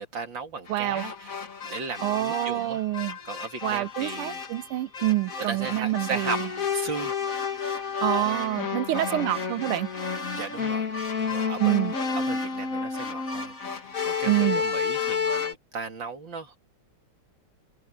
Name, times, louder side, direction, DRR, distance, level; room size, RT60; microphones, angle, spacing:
voice 1, 0.0-1.4 1.6-2.8 3.2-4.4 5.5-7.1 8.1-8.3 8.9-9.3 10.3-10.9 11.2-13.7 14.0-16.6, right 4 dB, 60° right, 3.1 m, -36 dB
sound 1, 0.7-15.5, left 6 dB, 40° left, 2.2 m, -31 dB
voice 2, 0.7-1.0 2.0-3.2 3.6-6.5 8.0-9.9 11.6-11.9 14.2-14.6, right 16 dB, 90° right, 1.6 m, -26 dB
omnidirectional pair, 2.3 m